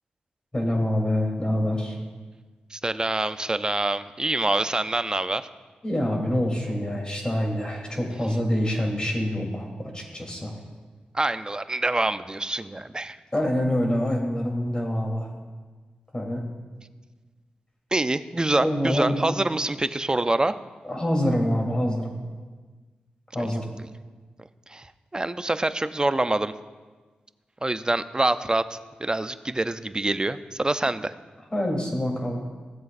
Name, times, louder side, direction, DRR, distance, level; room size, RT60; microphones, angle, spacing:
voice 1, 0.5-2.0 5.8-10.5 13.3-15.3 16.1-16.4 18.6-19.2 20.8-22.1 23.3-23.6 31.5-32.4, equal, 25° left, -1 dB, 3.3 m, -26 dB
voice 2, 2.7-5.5 11.1-13.2 17.9-20.6 23.4-23.5 24.7-26.5 27.6-31.1, right 2 dB, 25° right, 12 dB, 0.5 m, -26 dB
15.5 x 7.8 x 2.6 m, 1.4 s
supercardioid pair, 45°, 3 cm